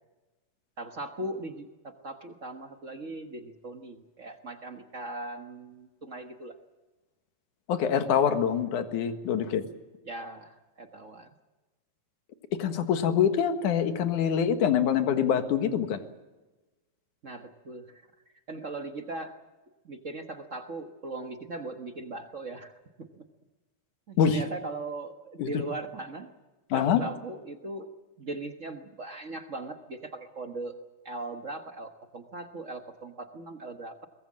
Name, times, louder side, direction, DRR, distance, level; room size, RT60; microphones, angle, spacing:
voice 1, 0.8-6.5 10.0-11.3 17.2-18.0 18.5-19.3 19.8-23.2 24.1-26.3 26.7-27.9 28.2-30.8 31.0-34.1, right 2 dB, 50° right, 6 dB, 0.9 m, -39 dB
voice 2, 7.7-9.6 12.6-16.0 24.2-24.4 25.4-25.6 26.7-27.0, left 8 dB, 85° left, 8 dB, 3.0 m, -25 dB
23.0 x 20.5 x 7.5 m, 1.2 s
omnidirectional pair, 3.4 m